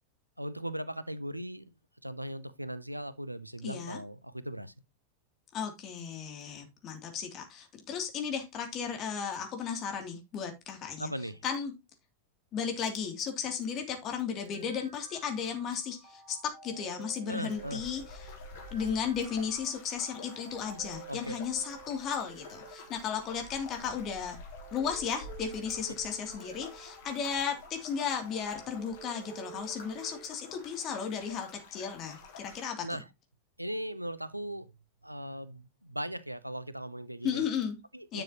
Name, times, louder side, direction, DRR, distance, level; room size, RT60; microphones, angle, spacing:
voice 1, 0.4-1.7 2.0-4.7 11.0-11.4 17.3-17.8 21.1-21.4 32.8-33.1 33.6-34.7 35.0-37.4 37.9-38.2, right 1 dB, 90° right, 0.7 m, -38 dB
voice 2, 3.6-4.0 5.5-11.1 11.4-11.7 12.5-18.3 18.7-24.4 24.7-32.8 37.2-37.8 38.1-38.2, left 7 dB, 35° left, 2.9 m, -35 dB
sound 1, 14.3-30.3, right 9 dB, 45° right, 3.2 m, -52 dB
sound 2, 17.5-32.7, left 4 dB, 55° left, 3.4 m, -49 dB
10.5 x 6.9 x 3.0 m
figure-of-eight pair, 90°, 0 cm